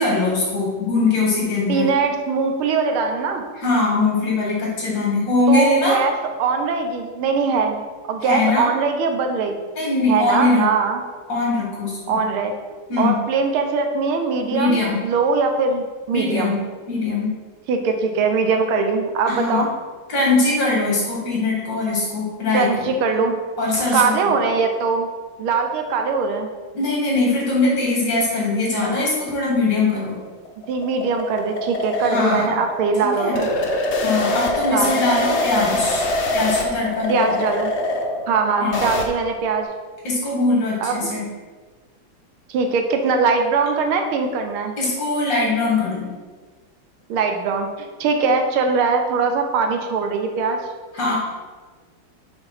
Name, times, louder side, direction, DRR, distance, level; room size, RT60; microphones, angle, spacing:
voice 1, 0.0-1.9 3.6-6.0 8.2-8.7 9.7-10.7 11.3-12.2 12.9-13.2 14.5-15.0 16.1-16.6 16.9-17.3 19.3-19.7 20.1-22.9 23.2-23.3 23.6-24.3 26.7-30.2 32.0-32.6 33.0-33.3 34.0-36.1 36.3-37.4 38.6-38.8 40.0-41.2 44.8-46.1 50.9-51.2, left 3 dB, 60° left, -4 dB, 2.8 m, -21 dB
voice 2, 1.7-3.4 5.5-6.1 6.4-7.8 8.1-9.6 10.1-11.0 12.1-12.5 13.0-16.5 17.7-19.7 22.5-23.3 23.9-25.1 25.4-26.5 30.7-33.5 34.7-35.0 37.1-37.7 38.3-39.7 40.8-41.1 42.5-44.7 47.1-50.6, right 4 dB, 80° right, 5 dB, 1.6 m, -21 dB
sound 1, 30.1-39.1, left 2 dB, 75° left, 0.6 m, -24 dB
6.8 x 4.0 x 5.7 m, 1.4 s
omnidirectional pair, 2.3 m